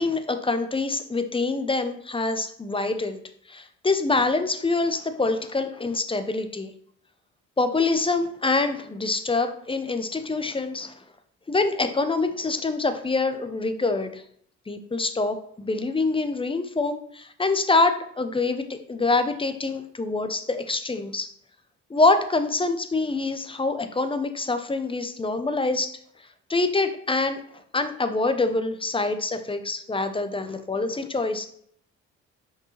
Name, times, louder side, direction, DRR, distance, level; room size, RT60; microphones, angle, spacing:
voice 1, 0.0-3.2 3.5-6.7 7.6-10.9 11.5-14.2 14.7-21.3 21.9-26.0 26.5-27.4 27.7-31.5, left 3 dB, 15° left, 9 dB, 0.7 m, -25 dB
6.3 x 5.2 x 3.2 m, 0.64 s
cardioid pair, 90°, 30 cm